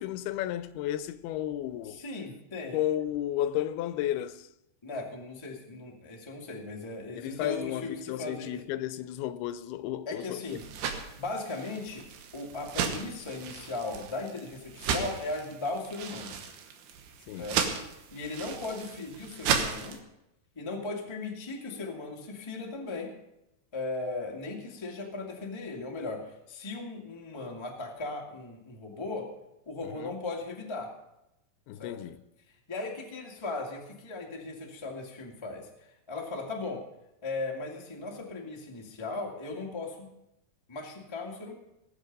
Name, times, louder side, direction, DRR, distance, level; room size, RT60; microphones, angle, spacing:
voice 1, 0.0-2.0 2.7-4.5 7.2-10.6 17.3-17.5 29.9-30.2 31.7-32.2, left 12 dB, 85° left, 2.6 m, -33 dB
voice 2, 1.8-2.8 4.8-8.6 10.0-10.6 11.2-12.0 12.3-16.4 17.4-17.6 18.1-20.0 20.5-23.1 23.7-29.3 29.6-30.9 31.8-32.0 32.7-35.7 36.1-36.8 37.2-40.1 40.7-41.5, left 3 dB, 20° left, 0.7 m, -37 dB
sound 1, 10.5-20.0, right 7 dB, 80° right, 3.2 m, -35 dB
19.0 x 8.4 x 5.4 m
omnidirectional pair, 4.4 m